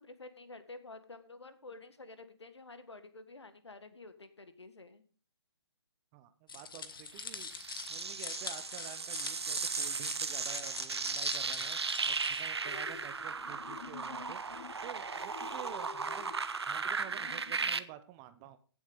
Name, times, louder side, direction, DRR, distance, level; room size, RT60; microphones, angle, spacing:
voice 1, 0.0-5.0, left 3 dB, 70° left, 11 dB, 1.6 m, -50 dB
voice 2, 6.1-7.5 7.9-11.8 12.1-16.4 16.7-18.6, right 13 dB, 15° right, 11 dB, 0.6 m, -50 dB
sound 1, 6.5-12.5, left 5 dB, 50° left, 1.4 m, -44 dB
sound 2, 7.2-17.8, right 5 dB, 65° right, 0.9 m, -36 dB
sound 3, 12.6-17.8, left 10 dB, 30° left, 0.5 m, -51 dB
16.0 x 7.3 x 3.9 m, 0.41 s
figure-of-eight pair, 140°, 15 cm